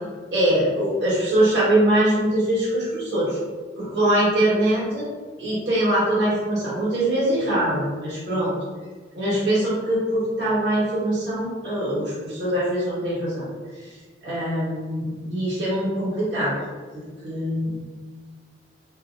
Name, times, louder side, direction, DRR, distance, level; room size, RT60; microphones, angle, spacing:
voice 1, 0.3-3.4 3.7-5.1 5.4-8.5 9.1-13.5 13.8-13.9 14.2-16.5 17.2-17.8, right 1 dB, 70° right, -8 dB, 1.4 m, -22 dB
3.0 x 2.8 x 2.5 m, 1.5 s
head